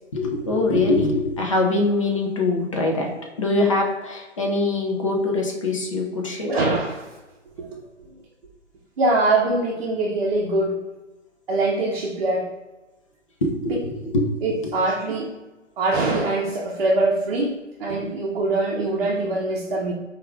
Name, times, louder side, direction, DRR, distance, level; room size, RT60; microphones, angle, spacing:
voice 1, 0.1-3.1 3.4-6.6 13.4-14.3 14.6-15.0, left 2 dB, 25° left, 1 dB, 0.5 m, -23 dB
voice 2, 6.5-7.0 7.6-7.8 9.0-10.7 11.5-12.5 14.4-15.3 15.8-19.9, right 2 dB, 40° right, -3 dB, 0.7 m, -23 dB
4.6 x 2.4 x 3.3 m, 1.1 s
hypercardioid pair, 145°, 38 cm